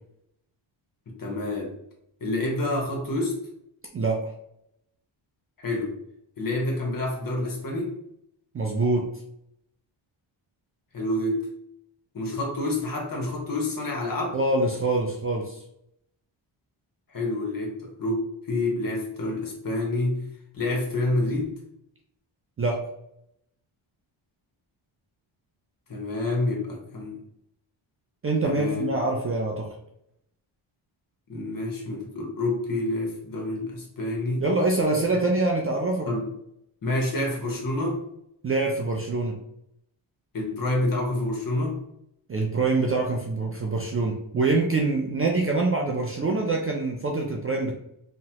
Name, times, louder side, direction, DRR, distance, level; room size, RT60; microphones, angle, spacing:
voice 1, 1.1-1.7 2.2-3.4 5.6-6.0 6.4-7.9 10.9-11.5 12.1-14.4 17.1-20.2 20.5-21.6 25.9-27.2 28.4-28.9 31.3-34.4 36.1-36.3 36.8-38.0 40.3-41.8, left 2 dB, 40° left, 0 dB, 1.0 m, -28 dB
voice 2, 8.5-9.1 14.3-15.6 22.6-22.9 28.2-29.7 34.4-36.1 38.4-39.4 42.3-47.7, right 3 dB, 30° right, 0 dB, 0.4 m, -25 dB
2.9 x 2.1 x 2.8 m, 0.75 s
cardioid pair, 75°, 50 cm